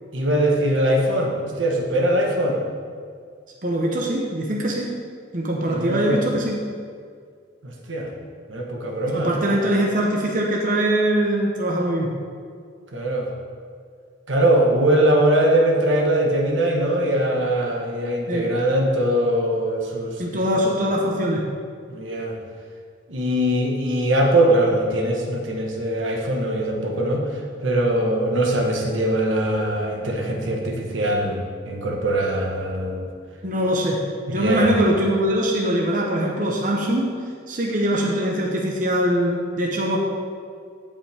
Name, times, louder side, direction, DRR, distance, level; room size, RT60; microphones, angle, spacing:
voice 1, 0.1-2.6 5.7-6.2 7.6-8.1 8.5-9.5 12.9-13.3 14.3-20.4 21.9-22.4 23.1-27.3 27.6-33.1 34.3-34.7, right 1 dB, 80° right, 0 dB, 1.3 m, -21 dB
voice 2, 3.6-4.9 5.3-6.6 9.1-12.1 18.3-18.5 20.2-21.4 33.4-34.0 34.3-37.1 37.5-40.0, equal, 45° right, -1 dB, 1.0 m, -22 dB
15.5 x 5.5 x 3.5 m, 2.1 s
head